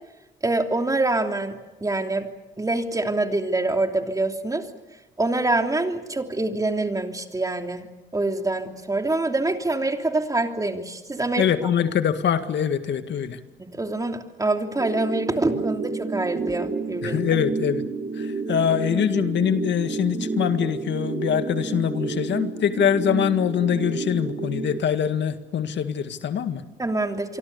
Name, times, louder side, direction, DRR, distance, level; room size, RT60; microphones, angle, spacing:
voice 1, 0.4-2.3 2.6-4.7 5.2-11.7 13.6-17.2 26.8-27.4, right 2 dB, 15° right, 5 dB, 3.0 m, -25 dB
voice 2, 11.4-13.4 17.0-17.8 18.2-26.6, left 8 dB, 65° left, 9 dB, 2.0 m, -24 dB
sound 1, 14.8-24.8, right 4 dB, 35° right, 1.7 m, -30 dB
26.5 x 24.0 x 7.0 m, 1.1 s
cardioid pair, 90°, 20 cm